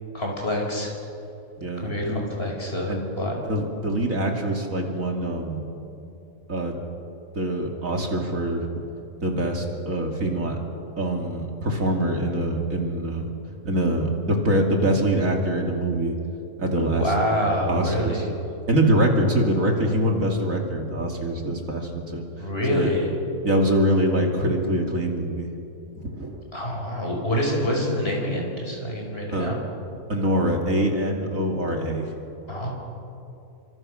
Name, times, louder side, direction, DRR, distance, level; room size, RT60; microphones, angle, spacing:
voice 1, 0.1-0.9 1.8-3.3 16.9-18.3 22.4-23.1 26.5-29.6 32.5-32.7, equal, 40° left, 0 dB, 5.8 m, -26 dB
voice 2, 1.6-2.2 2.9-3.0 3.5-5.7 6.5-6.8 7.3-8.7 9.2-10.6 11.0-13.3 13.6-16.2 16.6-17.1 17.7-18.3 18.7-22.3 22.7-22.9 23.4-25.5 26.1-26.4 29.3-29.5 30.1-32.1, right 1 dB, 55° right, 1 dB, 3.1 m, -24 dB
30.0 x 25.5 x 6.5 m, 2.7 s
omnidirectional pair, 1.6 m